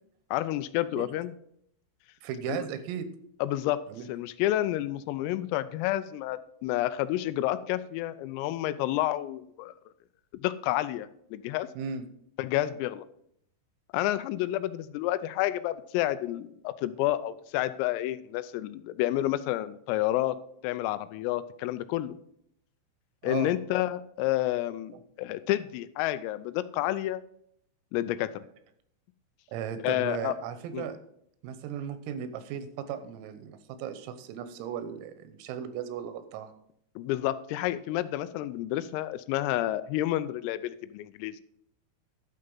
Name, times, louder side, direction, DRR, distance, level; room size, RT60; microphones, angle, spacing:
voice 1, 0.3-1.3 2.5-2.7 3.4-3.8 4.1-9.7 10.4-11.7 12.4-13.1 13.9-20.4 20.6-22.2 23.2-27.2 27.9-28.5 29.8-30.3 30.7-30.9 37.0-41.4, left 14 dB, 85° left, 14 dB, 3.3 m, -30 dB
voice 2, 2.2-3.1 3.9-4.0 11.8-12.1 23.2-23.6 29.5-31.0 31.4-36.5, right 8 dB, 85° right, 11 dB, 3.6 m, -36 dB
11.5 x 6.6 x 5.4 m, 0.70 s
omnidirectional pair, 6.0 m